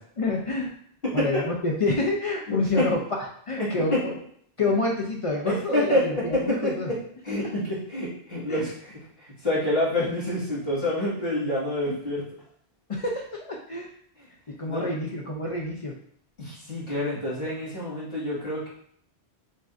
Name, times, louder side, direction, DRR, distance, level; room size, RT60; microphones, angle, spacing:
voice 1, 0.2-0.7 1.1-3.0 3.5-4.1 4.6-6.9 8.5-8.7 11.9-12.0 12.9-13.9 14.6-15.9, left 2 dB, 45° left, 0 dB, 0.4 m, -27 dB
voice 2, 2.5-2.8 3.6-4.0 5.5-6.9 7.2-12.2 14.7-14.9 16.4-18.7, left 1 dB, 60° left, -8 dB, 2.2 m, -27 dB
6.3 x 2.5 x 2.5 m, 0.63 s
omnidirectional pair, 1.1 m